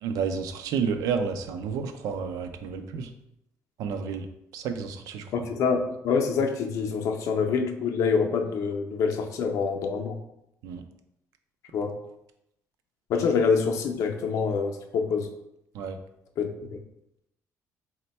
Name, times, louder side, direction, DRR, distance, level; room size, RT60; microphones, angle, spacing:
voice 1, 0.0-3.1 3.8-4.3 4.5-5.2 10.6-10.8 15.7-16.0, right 6 dB, 90° right, 8 dB, 0.4 m, -30 dB
voice 2, 5.3-10.1 11.7-12.0 13.1-15.3 16.4-16.8, left 5 dB, 65° left, 4 dB, 0.5 m, -26 dB
4.2 x 2.2 x 4.0 m, 0.81 s
cardioid pair, 165°, 6 cm